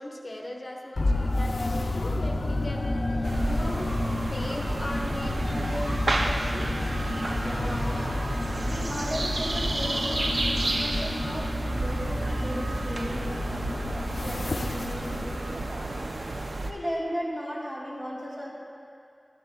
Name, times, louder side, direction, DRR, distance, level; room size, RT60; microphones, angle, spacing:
voice 1, 0.0-4.0 4.3-6.9 7.8-8.1, left 1 dB, 55° left, -1 dB, 1.2 m, -38 dB
sound 1, 1.0-15.4, left 2 dB, 80° left, 0.5 m, -30 dB
sound 2, 3.2-16.7, right 2 dB, 75° right, 0.6 m, -31 dB
voice 2, 7.4-7.9 8.6-16.0 16.7-18.5, equal, 20° right, -5 dB, 2.5 m, -36 dB
13.5 x 10.5 x 2.3 m, 2.4 s
wide cardioid pair, 50°, 0 cm